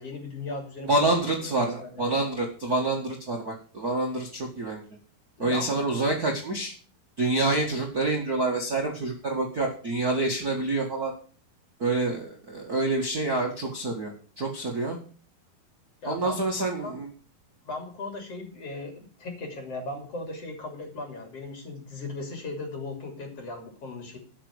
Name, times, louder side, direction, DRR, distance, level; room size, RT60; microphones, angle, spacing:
voice 1, 0.0-2.0 5.4-5.9 16.0-17.0 17.7-24.2, left 2 dB, 40° left, 3 dB, 3.5 m, -37 dB
voice 2, 0.8-4.8 5.4-6.7 7.2-11.1 11.8-15.0 16.0-17.1, right 2 dB, 35° right, -1 dB, 1.7 m, -27 dB
12.5 x 6.0 x 8.1 m, 0.41 s
omnidirectional pair, 4.4 m